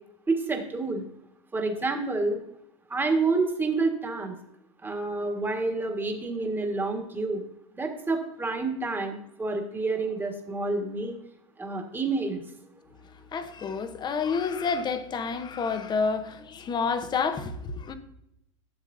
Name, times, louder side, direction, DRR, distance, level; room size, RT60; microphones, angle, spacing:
voice 1, 0.3-1.1 1.5-2.4 2.9-4.4 4.8-7.4 7.7-11.2 11.6-12.4, right 3 dB, 15° right, 1.6 m, -28 dB
voice 2, 13.3-18.0, left 5 dB, 25° left, 0.9 m, -29 dB
12.5 x 7.1 x 2.6 m
supercardioid pair, 115°, 16 cm